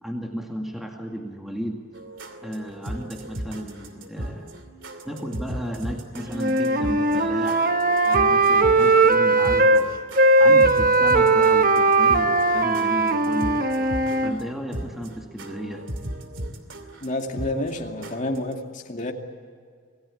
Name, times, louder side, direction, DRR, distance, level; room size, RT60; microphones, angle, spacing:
voice 1, 0.0-1.8 2.4-4.5 5.0-9.9 10.4-13.6 14.2-15.9, equal, ahead, 1 dB, 2.1 m, -34 dB
sound 1, 1.9-18.5, right 1 dB, 80° right, 2.6 m, -37 dB
Wind instrument woodwind instrument, 6.3-9.8 10.1-14.4, right 2 dB, 45° right, 1.3 m, -19 dB
voice 2, 17.0-19.1, left 1 dB, 40° left, 2 dB, 2.4 m, -29 dB
27.0 x 18.5 x 8.6 m, 2.1 s
head